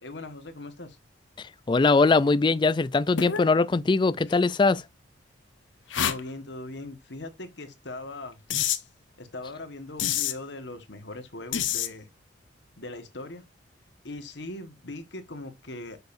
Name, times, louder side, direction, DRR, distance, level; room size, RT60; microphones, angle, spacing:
voice 1, 0.0-1.0 5.9-8.4 9.2-12.1 12.8-13.4 14.0-16.0, left 2 dB, 70° left, 1.4 m, -40 dB
voice 2, 1.7-4.8, left 3 dB, 25° left, 0.3 m, -21 dB
sound 1, 3.2-3.5 4.3-4.4 5.9-6.2 8.5-8.8 10.0-10.4 11.5-11.9, left 9 dB, 90° left, 0.8 m, -27 dB
6.8 x 6.6 x 2.6 m
head